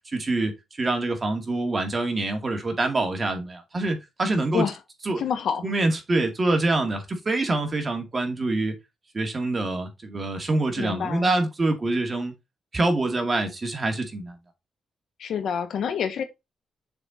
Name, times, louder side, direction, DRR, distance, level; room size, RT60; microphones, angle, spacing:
voice 1, 0.1-0.5 0.8-4.6 5.1-5.2 5.6-8.7 9.1-12.3 12.7-14.4, right 2 dB, 25° right, 2.2 m, -25 dB
voice 2, 5.2-5.7 10.8-11.3 15.2-16.2, left 7 dB, 70° left, 1.6 m, -27 dB
6.8 x 4.4 x 4.3 m
wide cardioid pair, 140°, 0 cm